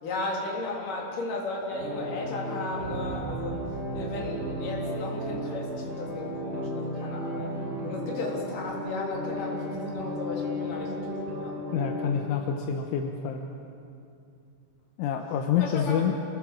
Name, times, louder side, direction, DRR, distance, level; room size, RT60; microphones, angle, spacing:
voice 1, 0.0-3.6 3.9-7.5 7.8-11.5 15.6-16.1, left 2 dB, 45° left, -2 dB, 4.8 m, -35 dB
sound 1, 1.7-12.1, equal, 50° right, 6.5 m, -34 dB
sound 2, 2.7-7.3, right 6 dB, 70° right, 2.9 m, -44 dB
voice 2, 11.7-13.4 15.0-16.1, left 8 dB, 80° left, 3 dB, 3.4 m, -27 dB
28.5 x 20.0 x 7.6 m, 2.6 s
omnidirectional pair, 5.7 m